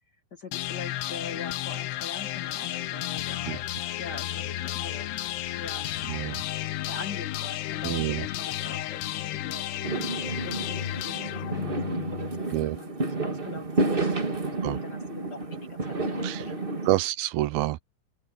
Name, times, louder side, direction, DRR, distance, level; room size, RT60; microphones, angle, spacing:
voice 1, 0.3-3.7 4.0-5.2 5.6-5.9 6.9-9.7 10.4-17.0, left 4 dB, 55° left, 1.1 m, -43 dB
sound 1, 0.5-12.5, left 14 dB, 80° left, 3.2 m, -33 dB
voice 2, 6.1-6.4 7.8-8.2 12.5-12.8 14.6-14.8 16.2-16.4 16.9-17.8, right 17 dB, 80° right, 2.3 m, -27 dB
Fireworks, 9.8-16.9, right 3 dB, 50° right, 0.6 m, -30 dB
open air
omnidirectional pair, 4.7 m